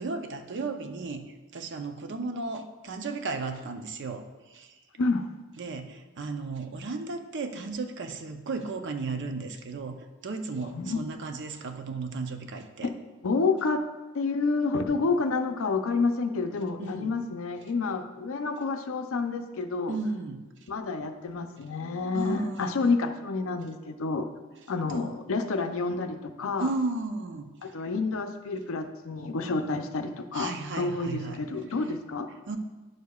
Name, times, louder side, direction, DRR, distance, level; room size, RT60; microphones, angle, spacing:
voice 1, 0.0-4.8 5.6-10.0 10.2-12.9 16.8-17.1 19.9-20.5 22.1-22.8 24.9-25.1 26.6-27.9 30.3-31.4 32.5-32.6, right 3 dB, 55° right, 7 dB, 0.6 m, -34 dB
voice 2, 13.2-13.8 14.1-20.0 20.7-24.3 24.7-26.7 27.6-32.3, left 3 dB, 65° left, 7 dB, 0.6 m, -29 dB
10.5 x 6.5 x 2.3 m, 1.2 s
head